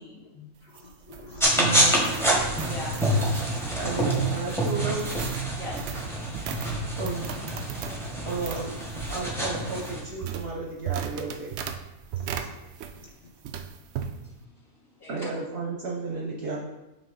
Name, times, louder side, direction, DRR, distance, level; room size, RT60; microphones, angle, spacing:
voice 1, 0.0-0.7 2.6-3.4 4.2-4.3 5.6-6.1 8.5-8.6 14.2-14.5 15.0-15.3, left 2 dB, 40° left, -8 dB, 2.6 m, -41 dB
sound 1, 0.5-13.2 13.4-14.1, right 8 dB, 70° right, 0.6 m, -38 dB
voice 2, 0.7-2.0 2.7-2.9 8.4-8.6 12.1-12.5, left 3 dB, 80° left, 0 dB, 0.4 m, -45 dB
sound 2, 1.4-10.0, right 1 dB, ahead, 1.0 m, -27 dB
voice 3, 1.6-2.0 3.8-5.1 7.0-7.3 8.2-11.5 15.1-16.6, right 4 dB, 50° right, -2 dB, 0.9 m, -33 dB
5.9 x 5.1 x 3.9 m, 0.99 s
omnidirectional pair, 1.6 m